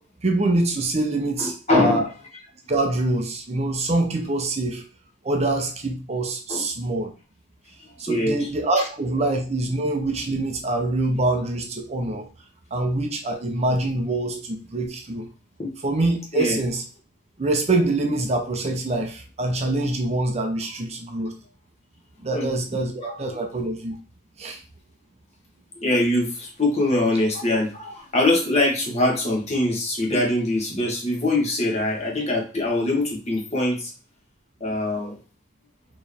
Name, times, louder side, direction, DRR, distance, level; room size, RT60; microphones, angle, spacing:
voice 1, 0.2-2.1 2.7-4.8 5.2-7.1 8.0-12.3 12.7-15.3 15.8-16.8 17.4-21.3 22.2-24.0 24.4-24.6, right 2 dB, 35° right, 4 dB, 0.6 m, -25 dB
voice 2, 1.4-2.0 6.5-6.6 8.1-8.5 8.8-8.9 15.6-15.7 16.3-16.6 22.3-22.5 23.0-23.1 25.8-33.9 34.6-35.2, left 2 dB, 35° left, -1 dB, 1.2 m, -23 dB
4.4 x 3.1 x 3.4 m, 0.36 s
head